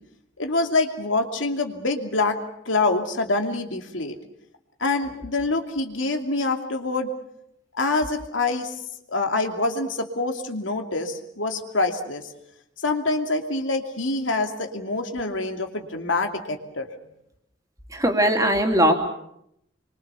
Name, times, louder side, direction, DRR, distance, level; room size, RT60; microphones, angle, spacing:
voice 1, 0.4-2.4 2.6-4.2 4.8-7.1 7.7-8.7 9.1-12.2 12.8-16.9, left 3 dB, 80° left, 5 dB, 2.7 m, -25 dB
voice 2, 17.9-18.9, right 1 dB, 15° right, 4 dB, 2.9 m, -19 dB
27.0 x 24.0 x 7.0 m, 0.77 s
head